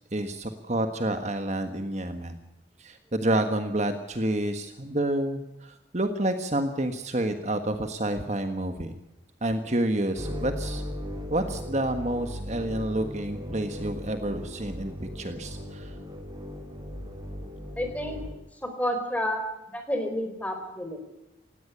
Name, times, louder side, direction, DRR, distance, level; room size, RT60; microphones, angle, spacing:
voice 1, 0.1-2.4 2.8-9.0 9.4-10.8 11.3-15.9, right 1 dB, 40° right, 7 dB, 1.5 m, -29 dB
sound 1, 10.1-18.3, equal, 25° right, 5.0 m, -37 dB
voice 2, 17.8-18.2 18.6-19.4 19.7-21.0, equal, 10° left, 5 dB, 4.4 m, -30 dB
18.5 x 17.0 x 8.5 m, 0.92 s
head